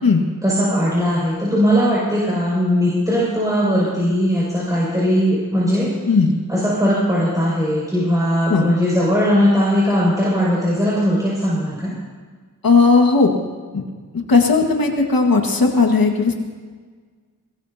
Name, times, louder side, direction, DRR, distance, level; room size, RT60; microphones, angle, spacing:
voice 1, 0.4-5.9 6.5-11.9, equal, 10° right, -8 dB, 6.5 m, -19 dB
voice 2, 12.6-13.3 13.7-13.8 14.3-16.3, left 4 dB, 85° left, 2 dB, 2.0 m, -15 dB
23.0 x 21.0 x 2.9 m, 1.5 s
wide cardioid pair, 75°, 34 cm